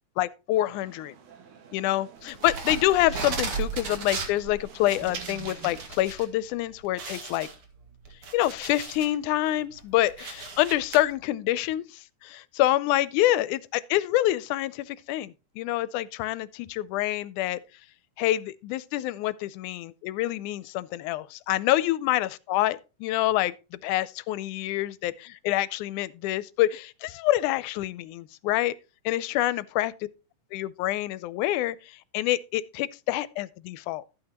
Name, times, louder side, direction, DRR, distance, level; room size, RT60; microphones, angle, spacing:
voice 1, 0.2-1.2 1.7-7.5 8.3-17.6 18.2-28.7 29.1-29.9 30.5-34.0, left 15 dB, 80° left, 2.0 m, -27 dB
sound 1, 0.5-5.9, right 7 dB, 70° right, 2.9 m, -52 dB
sound 2, 2.3-6.2 6.6-6.7 7.0-9.2 9.6-11.0, right 5 dB, 50° right, 2.5 m, -35 dB
13.0 x 8.9 x 2.9 m
omnidirectional pair, 3.6 m